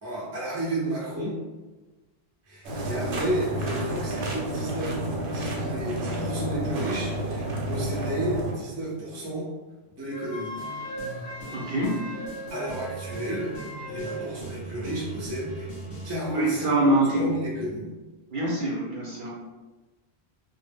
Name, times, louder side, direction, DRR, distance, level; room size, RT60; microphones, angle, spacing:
voice 1, 0.0-1.4 2.5-5.0 5.3-9.5 10.0-10.5 12.5-13.5 13.9-15.7 16.0-17.9, right 1 dB, 20° right, -5 dB, 0.5 m, -32 dB
sound 1, 2.6-8.5, right 1 dB, 85° right, 0.8 m, -30 dB
Wind instrument woodwind instrument, 10.1-14.3, right 1 dB, 70° left, 0.8 m, -38 dB
sound 2, 10.6-16.1, right 2 dB, 40° left, 0.8 m, -40 dB
voice 2, 11.5-12.0 16.3-17.3 18.3-19.3, right 1 dB, 55° right, -5 dB, 0.7 m, -24 dB
2.0 x 2.0 x 3.3 m, 1.2 s
omnidirectional pair, 1.1 m